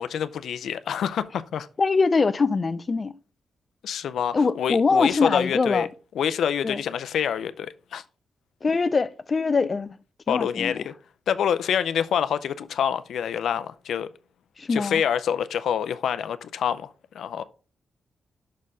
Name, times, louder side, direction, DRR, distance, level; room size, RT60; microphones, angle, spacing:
voice 1, 0.0-1.7 3.8-5.9 6.2-8.0 10.3-10.9 11.3-14.1 14.7-17.4, left 8 dB, 85° left, 0.5 m, -27 dB
voice 2, 1.8-3.1 4.3-5.9 6.6-6.8 8.6-10.0 10.3-10.8 14.6-15.0, left 4 dB, 30° left, 0.4 m, -23 dB
6.1 x 4.3 x 5.4 m
wide cardioid pair, 150°, 0 cm